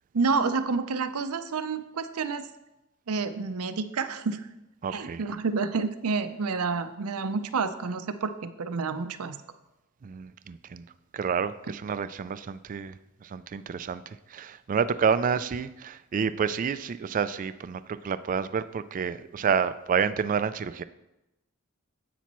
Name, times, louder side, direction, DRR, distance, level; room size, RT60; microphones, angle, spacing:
voice 1, 0.1-2.4 3.1-4.4 4.9-9.4, right 4 dB, 85° right, 10 dB, 0.6 m, -29 dB
voice 2, 4.8-5.2 10.0-10.8 11.1-12.9 13.2-14.0 14.3-20.8, right 6 dB, 40° right, 13 dB, 0.3 m, -29 dB
10.0 x 8.3 x 3.0 m, 0.94 s
head